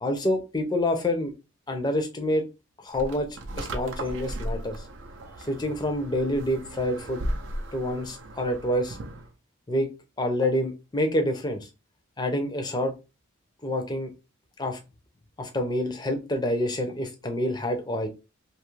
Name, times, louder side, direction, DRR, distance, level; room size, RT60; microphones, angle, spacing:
voice 1, 0.0-1.3 1.7-2.4 2.8-3.3 3.6-4.8 5.4-7.2 7.7-9.0 9.7-9.9 10.2-11.7 12.2-12.9 13.6-14.1 14.6-14.8 15.4-18.1, left 1 dB, 20° left, 5 dB, 0.5 m, -27 dB
sound 1, 2.9-9.3, right 1 dB, 60° right, 0.4 m, -36 dB
2.7 x 2.4 x 3.0 m, 0.27 s
head